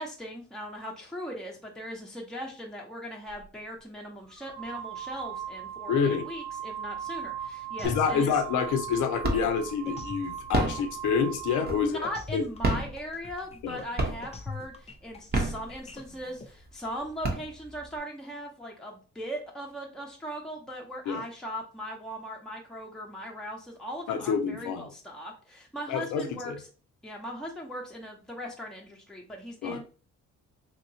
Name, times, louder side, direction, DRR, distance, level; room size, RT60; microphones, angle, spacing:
voice 1, 0.0-8.3 11.8-26.7 27.0-29.8, equal, ahead, 0.8 m, -39 dB
sound 1, 3.3-3.5 4.3-12.0, right 9 dB, 85° right, 0.8 m, -39 dB
voice 2, 5.9-6.3 7.8-12.4 13.6-13.8 21.1-21.2 24.1-24.8 25.9-26.6 29.6-29.8, left 6 dB, 75° left, 0.6 m, -28 dB
sound 2, 7.8-16.5, left 4 dB, 20° left, 0.4 m, -43 dB
sound 3, 7.8-8.3 8.7-9.7 10.3-12.1 12.5-13.7 14.0-14.5 15.1-16.2 16.7-16.8 17.0-17.9, right 2 dB, 30° right, 0.8 m, -30 dB
2.9 x 2.9 x 2.7 m
cardioid pair, 90°, 30 cm